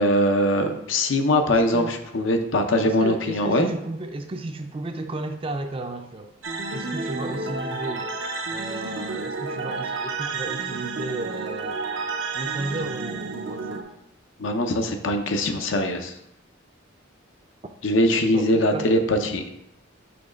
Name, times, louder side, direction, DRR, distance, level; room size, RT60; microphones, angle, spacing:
voice 1, 0.0-3.7 14.4-16.1 17.8-19.4, left 1 dB, 75° left, 6 dB, 0.7 m, -22 dB
voice 2, 1.5-2.0 2.8-6.3 6.7-8.1 8.5-11.8 12.3-13.8 18.3-18.9, right 2 dB, 25° right, 6 dB, 0.4 m, -34 dB
sound 1, 6.4-13.8, right 3 dB, 70° right, 0.6 m, -30 dB
6.1 x 3.1 x 5.0 m, 0.81 s
head